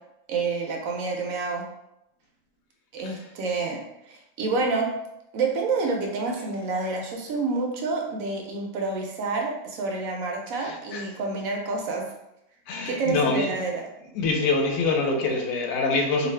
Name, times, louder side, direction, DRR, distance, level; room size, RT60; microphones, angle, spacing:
voice 1, 0.3-1.6 2.9-3.8 4.1-4.9 5.3-12.0 12.9-13.8 16.2-16.3, right 3 dB, 75° right, 1 dB, 1.0 m, -28 dB
voice 2, 10.6-11.0 12.7-13.5 14.1-16.3, left 3 dB, 75° left, 2 dB, 1.0 m, -25 dB
2.6 x 2.4 x 3.1 m, 0.84 s
omnidirectional pair, 1.5 m